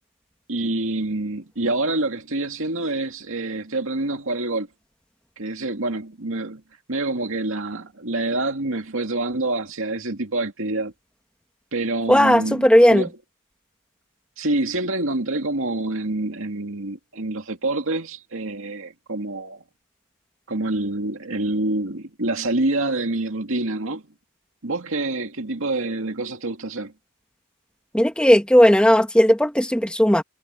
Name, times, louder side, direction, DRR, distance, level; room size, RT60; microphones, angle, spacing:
voice 1, 0.5-4.7 5.4-6.6 6.9-10.9 11.7-13.1 14.4-19.6 20.5-24.0 24.6-26.9, right 2 dB, 65° right, 2.4 m, -26 dB
voice 2, 12.1-13.0 27.9-30.2, equal, 5° left, 1.6 m, -16 dB
head